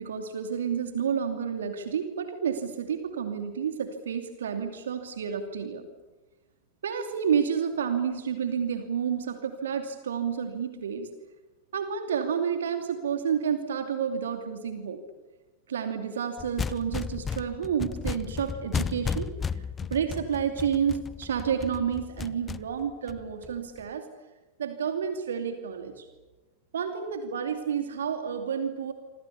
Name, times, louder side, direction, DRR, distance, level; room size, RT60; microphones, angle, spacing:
voice 1, 0.0-5.9 6.8-11.1 11.7-15.0 15.7-19.6 19.9-24.1 24.6-26.1 26.7-28.9, right 7 dB, 65° right, 7 dB, 2.7 m, -30 dB
sound 1, 16.4-23.8, left 6 dB, 20° left, 0.9 m, -34 dB
27.5 x 27.0 x 7.0 m, 1.2 s
figure-of-eight pair, 90°, 0 cm